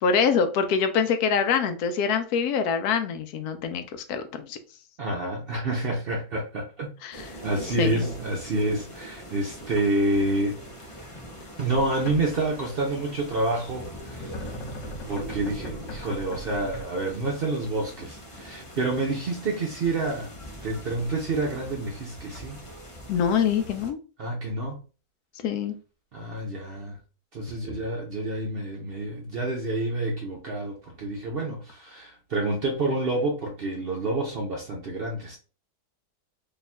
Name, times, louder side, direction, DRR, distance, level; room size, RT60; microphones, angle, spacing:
voice 1, 0.0-4.6 7.0-7.3 7.8-8.0 23.1-24.0 25.4-25.7, left 6 dB, 80° left, 1.1 m, -25 dB
voice 2, 5.0-6.9 7.4-10.6 11.6-14.5 15.1-20.3 20.6-22.6 24.2-24.8 26.1-27.0 27.3-35.4, right 2 dB, 55° right, 0.6 m, -28 dB
sound 1, 7.1-23.9, equal, 45° left, 0.4 m, -42 dB
sound 2, 11.7-12.7 13.9-16.8, equal, 60° left, 1.2 m, -38 dB
3.1 x 2.4 x 4.1 m
omnidirectional pair, 1.6 m